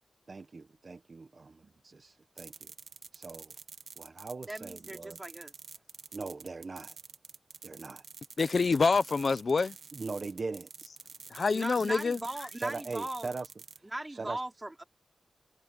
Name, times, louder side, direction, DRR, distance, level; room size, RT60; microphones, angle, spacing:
voice 1, 0.3-1.0 1.8-2.7 3.1-3.5 4.0-5.2 6.1-7.0 7.6-8.0 9.9-10.7 12.6-13.5 13.8-14.4, right 3 dB, 45° right, 0.9 m, -40 dB
sound 1, 2.4-13.8, right 5 dB, 75° right, 1.3 m, -49 dB
voice 2, 4.5-5.5 11.5-13.3 13.9-14.8, right 1 dB, 15° right, 4.5 m, -38 dB
voice 3, 8.4-9.7 11.3-12.2, left 4 dB, 50° left, 0.7 m, -26 dB
wide cardioid pair, 125°, 0 cm